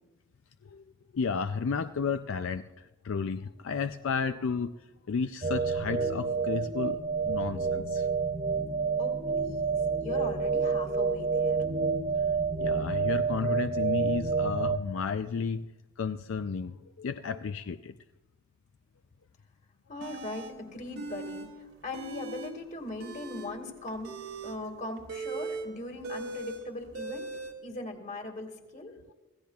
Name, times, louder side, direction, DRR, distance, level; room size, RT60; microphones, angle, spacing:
voice 1, 1.1-4.7 5.1-7.0 7.2-8.1 12.6-15.7 16.0-17.9, left 5 dB, 70° left, 10 dB, 0.4 m, -32 dB
sound 1, 5.4-14.8, right 5 dB, 25° right, 0.5 m, -29 dB
voice 2, 9.0-11.6 19.9-21.5 21.8-24.1 24.4-27.3 27.6-28.9, left 2 dB, 35° left, 4 dB, 2.0 m, -39 dB
sound 2, 20.0-20.5 20.9-21.5 21.8-22.5 22.9-27.5, right 3 dB, 90° right, 2.5 m, -39 dB
25.0 x 16.5 x 2.4 m, 1.1 s
head